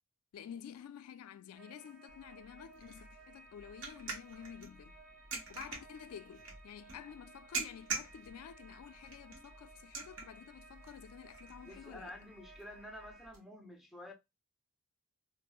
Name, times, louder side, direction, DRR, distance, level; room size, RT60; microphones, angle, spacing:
voice 1, 0.3-5.0 5.5-12.2, left 8 dB, 85° left, 0.3 m, -50 dB
sound 1, 1.5-13.3, right 2 dB, 35° right, 1.3 m, -59 dB
sound 2, 2.1-13.4, right 4 dB, 55° right, 1.1 m, -46 dB
voice 2, 11.6-14.1, left 1 dB, ahead, 0.5 m, -50 dB
4.3 x 2.0 x 2.2 m
head